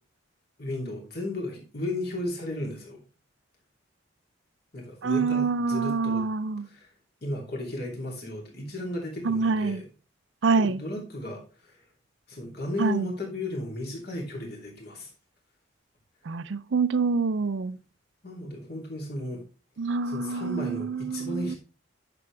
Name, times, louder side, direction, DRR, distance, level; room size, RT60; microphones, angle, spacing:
voice 1, 0.6-3.0 4.7-6.2 6.6-6.9 7.2-9.9 10.5-11.8 12.3-15.1 18.2-19.4 20.0-21.6, left 1 dB, 50° left, 2.9 m, -34 dB
voice 2, 5.0-6.7 9.2-9.8 10.4-10.8 12.8-13.1 16.3-17.8 19.8-21.6, right 4 dB, 65° right, 0.4 m, -26 dB
9.6 x 6.9 x 3.3 m
head